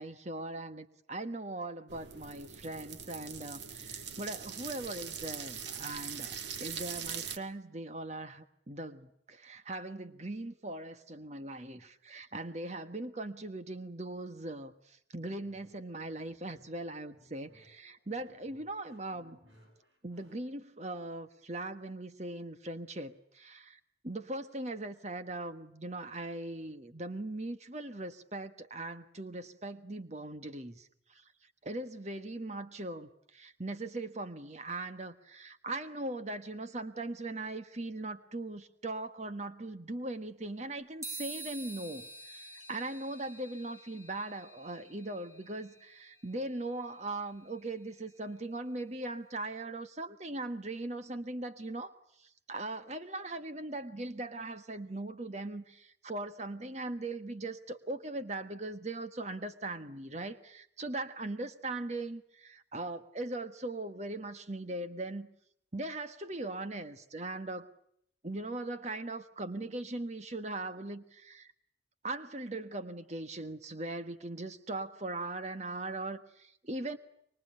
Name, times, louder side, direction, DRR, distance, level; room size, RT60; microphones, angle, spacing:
voice 1, 0.0-19.4 20.0-30.9 31.1-31.2 31.6-52.0 52.5-65.3 65.7-67.7 68.2-71.5 72.0-77.0, right 2 dB, 35° right, 10 dB, 1.4 m, -40 dB
sound 1, 1.9-7.4, right 7 dB, 70° right, 1.7 m, -42 dB
sound 2, 15.2-20.4, left 1 dB, 85° right, 7.9 m, -63 dB
sound 3, 41.0-48.7, right 2 dB, 15° right, 4.4 m, -49 dB
26.0 x 23.5 x 8.7 m, 0.71 s
head